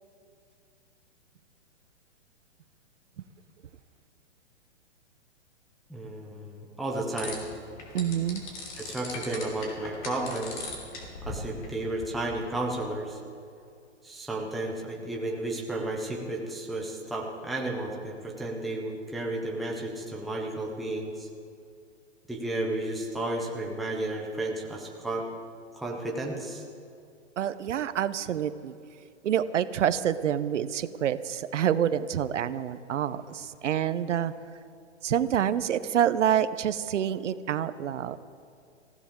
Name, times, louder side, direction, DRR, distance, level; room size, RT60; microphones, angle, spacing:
voice 1, 5.9-7.4 8.8-10.8 11.2-13.2 14.0-21.3 22.3-25.3 25.7-26.6, right 2 dB, ahead, -1 dB, 0.5 m, -33 dB
sound 1, 7.2-12.8, left 2 dB, 40° left, 3.0 m, -40 dB
voice 2, 7.9-8.4 27.4-28.7 29.2-34.3 35.0-38.2, right 9 dB, 85° right, 14 dB, 0.7 m, -27 dB
19.0 x 15.5 x 3.7 m, 2.4 s
hypercardioid pair, 150°, 36 cm